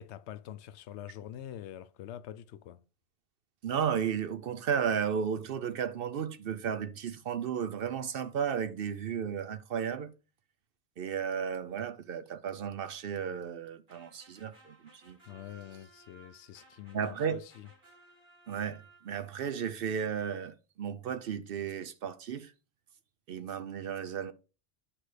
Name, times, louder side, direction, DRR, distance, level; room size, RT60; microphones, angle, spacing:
voice 1, 0.0-2.8 15.2-17.7, left 11 dB, 75° left, 0.9 m, -45 dB
voice 2, 3.6-10.1 11.0-15.2 16.9-17.4 18.5-22.5 23.3-24.3, right 7 dB, 60° right, 0.7 m, -34 dB
sound 1, 13.9-19.4, right 2 dB, 45° right, 2.3 m, -60 dB
10.0 x 5.3 x 3.3 m
omnidirectional pair, 1.2 m